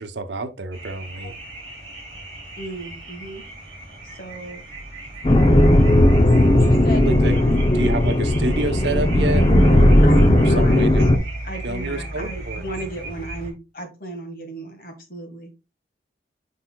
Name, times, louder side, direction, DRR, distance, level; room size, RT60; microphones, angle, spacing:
voice 1, 0.0-1.4 7.1-11.1 11.6-12.6, right 2 dB, 75° right, 0.8 m, -29 dB
sound 1, 0.7-13.5, right 1 dB, 30° right, 3.5 m, -36 dB
voice 2, 2.6-3.4 4.0-4.6 6.5-7.6 10.0-10.8 11.4-15.5, right 1 dB, 50° left, 1.6 m, -35 dB
sound 2, 5.2-11.2, left 1 dB, 30° left, 0.6 m, -15 dB
8.2 x 5.5 x 2.3 m
head